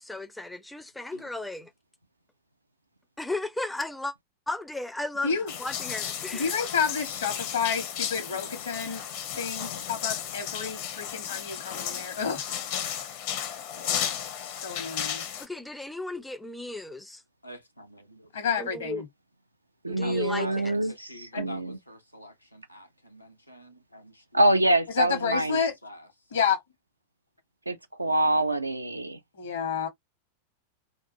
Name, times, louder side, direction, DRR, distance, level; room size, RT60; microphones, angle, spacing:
voice 1, 0.0-1.7 3.2-4.2 4.5-6.6 15.4-17.2 18.6-19.0 19.9-20.7, left 2 dB, 5° left, 0.4 m, -35 dB
sound 1, 5.5-15.5, left 9 dB, 50° left, 0.6 m, -34 dB
voice 2, 6.3-9.0 9.3-12.4 14.3-15.2 18.3-19.1 21.3-21.5 24.9-25.7 26.3-26.6 29.4-29.9, left 6 dB, 65° left, 1.0 m, -30 dB
voice 3, 8.2-8.6 17.4-18.3 20.0-24.5 25.3-26.4, equal, 90° left, 0.6 m, -46 dB
voice 4, 19.8-21.1 21.4-21.8 24.3-25.6 27.7-29.2, right 1 dB, 85° right, 0.4 m, -25 dB
2.4 x 2.2 x 2.6 m
figure-of-eight pair, 90°, 0 cm